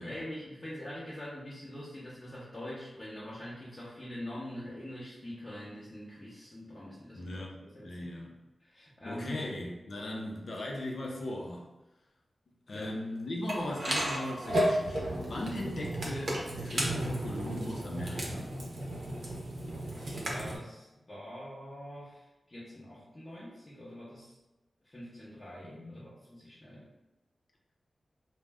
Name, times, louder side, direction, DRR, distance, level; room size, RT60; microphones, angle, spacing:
voice 1, 0.0-7.5 7.7-8.1 8.6-9.5 12.7-12.9 20.1-24.3 24.8-26.9, left 1 dB, 30° left, -8 dB, 0.7 m, -44 dB
voice 2, 7.1-8.4 9.0-11.7 12.7-18.5 25.7-26.1, left 1 dB, 70° left, -2 dB, 0.5 m, -38 dB
sound 1, 13.5-20.6, right 1 dB, 75° right, 0.6 m, -33 dB
2.5 x 2.1 x 3.3 m, 1.0 s
cardioid pair, 60°, 0 cm